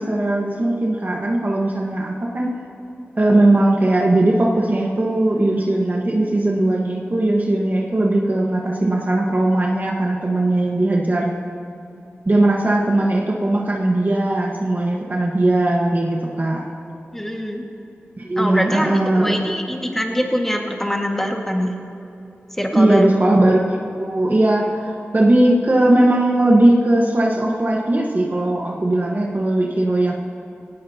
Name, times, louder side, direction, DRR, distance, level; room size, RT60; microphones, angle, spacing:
voice 1, 0.0-2.5 3.2-11.3 12.2-16.6 18.2-19.4 22.7-30.1, right 1 dB, 45° right, -2 dB, 1.4 m, -18 dB
voice 2, 17.1-17.6 18.4-21.8 22.6-23.1, equal, 10° left, 1 dB, 1.9 m, -23 dB
18.5 x 17.5 x 2.9 m, 2.8 s
cardioid pair, 50°, 4 cm